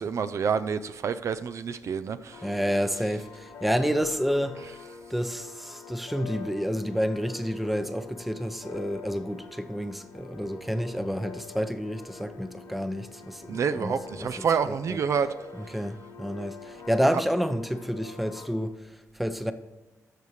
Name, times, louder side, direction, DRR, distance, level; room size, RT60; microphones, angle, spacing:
voice 1, 0.0-2.5 13.5-15.3, right 6 dB, 55° right, 0.4 m, -28 dB
sound 1, 2.3-18.5, left 4 dB, 85° left, 1.3 m, -45 dB
voice 2, 2.4-4.6 5.1-15.0 15.5-19.5, equal, ahead, 0.6 m, -29 dB
12.5 x 6.6 x 3.2 m
cardioid pair, 90°, 6 cm